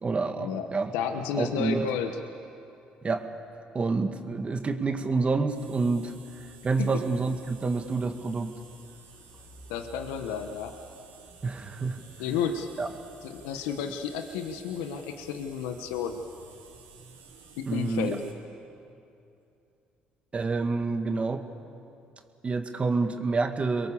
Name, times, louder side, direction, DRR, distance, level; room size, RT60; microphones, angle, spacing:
voice 1, 0.0-0.9 1.4-1.9 3.0-3.3 3.7-6.1 6.6-8.5 11.4-12.0 12.8-12.9 17.7-18.2 20.3-21.4 22.4-23.9, right 4 dB, 35° right, 6 dB, 2.2 m, -28 dB
voice 2, 0.9-2.1 6.8-6.9 9.7-10.7 12.2-12.7 13.2-16.2 17.6-18.2, left 7 dB, 80° left, 6 dB, 1.3 m, -31 dB
sound 1, 5.5-18.3, right 3 dB, 80° right, 4.3 m, -52 dB
29.0 x 22.5 x 7.2 m, 2.7 s
hypercardioid pair, 60°, 4 cm